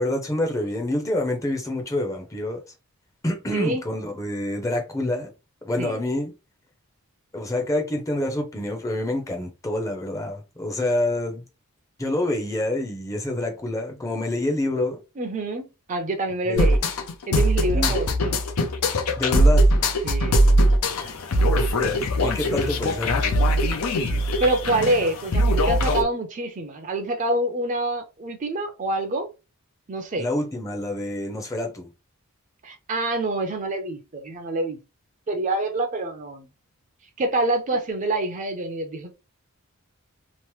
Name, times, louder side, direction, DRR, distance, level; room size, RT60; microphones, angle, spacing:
voice 1, 0.0-2.6 3.2-5.3 5.6-6.3 7.3-11.4 12.0-15.0 16.5-16.7 17.7-18.0 19.1-19.7 21.5-23.6 30.2-31.9, left 1 dB, 15° left, 0.6 m, -27 dB
voice 2, 15.2-16.8 17.3-18.4 20.0-21.1 22.6-22.7 24.4-29.3 29.9-30.3 32.6-34.8 35.3-36.5 37.2-39.1, right 2 dB, 35° right, 0.5 m, -26 dB
sound 1, 16.6-26.0, equal, 80° left, 0.6 m, -21 dB
3.0 x 2.0 x 3.1 m
head